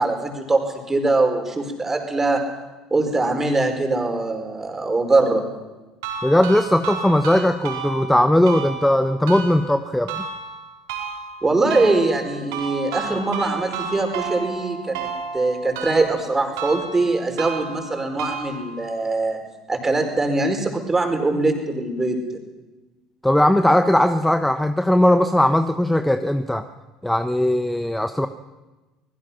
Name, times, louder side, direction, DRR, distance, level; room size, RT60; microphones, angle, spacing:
voice 1, 0.0-2.4 2.9-5.4 11.4-15.1 15.3-19.4 19.7-22.4, right 2 dB, 20° right, 4 dB, 5.1 m, -22 dB
sound 1, 6.0-19.0, right 5 dB, 70° right, 5.2 m, -33 dB
voice 2, 6.2-10.2 23.2-26.6 27.0-28.3, left 1 dB, 5° left, 10 dB, 1.1 m, -18 dB
25.5 x 21.5 x 6.0 m, 1.1 s
figure-of-eight pair, 65°, 2 cm